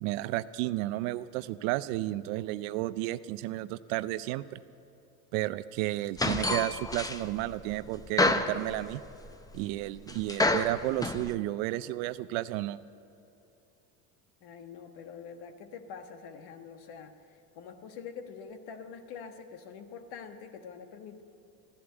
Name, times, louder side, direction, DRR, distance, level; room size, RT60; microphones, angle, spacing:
voice 1, 0.0-4.6 5.3-9.0 9.5-12.8, right 16 dB, 65° right, 15 dB, 0.6 m, -32 dB
sound 1, 6.2-7.4 7.7-9.3 9.6-9.7 10.1-11.3, left 2 dB, 10° left, 0.6 m, -28 dB
voice 2, 14.4-21.2, left 6 dB, 60° left, 7 dB, 1.6 m, -45 dB
14.0 x 11.0 x 8.0 m, 2.8 s
supercardioid pair, 100°, 44 cm